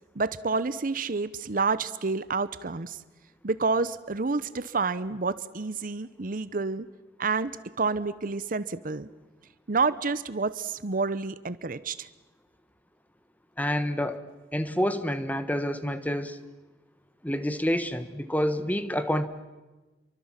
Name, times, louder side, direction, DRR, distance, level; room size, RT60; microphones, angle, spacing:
voice 1, 0.1-3.0 3.4-6.9 7.2-9.1 9.7-12.1, right 4 dB, 50° right, 0.8 m, -29 dB
voice 2, 13.6-14.2 14.5-16.4 17.2-19.3, equal, 10° left, 1.3 m, -28 dB
29.0 x 24.0 x 7.5 m
head